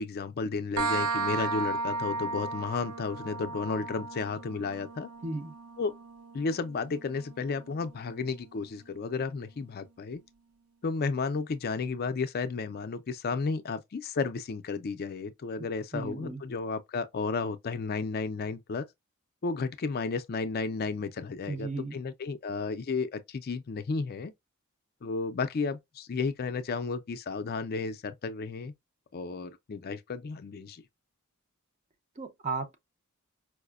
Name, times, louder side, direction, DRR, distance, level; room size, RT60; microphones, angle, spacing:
voice 1, 0.0-5.1 5.8-5.9 6.3-10.2 10.8-18.9 19.4-24.3 25.0-28.7 29.1-30.8, left 4 dB, 45° left, 0.4 m, -33 dB
sound 1, 0.8-8.2, right 4 dB, 85° right, 0.4 m, -35 dB
voice 2, 5.2-5.5 15.9-16.4 21.5-22.0 32.2-32.8, right 3 dB, 35° right, 0.7 m, -35 dB
4.7 x 2.1 x 2.3 m
head